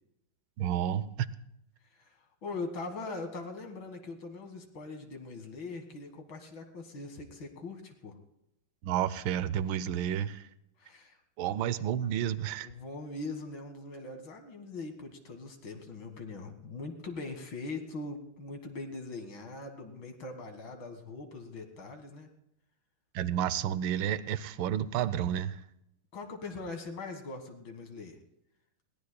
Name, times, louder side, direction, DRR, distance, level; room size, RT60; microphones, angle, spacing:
voice 1, 0.6-1.3 8.8-10.4 11.4-12.7 23.1-25.6, right 10 dB, 75° right, 16 dB, 1.4 m, -31 dB
voice 2, 1.9-8.2 10.8-11.2 12.6-22.3 26.1-28.2, left 3 dB, 65° left, 5 dB, 2.4 m, -41 dB
21.0 x 17.5 x 2.2 m, 0.83 s
omnidirectional pair, 2.3 m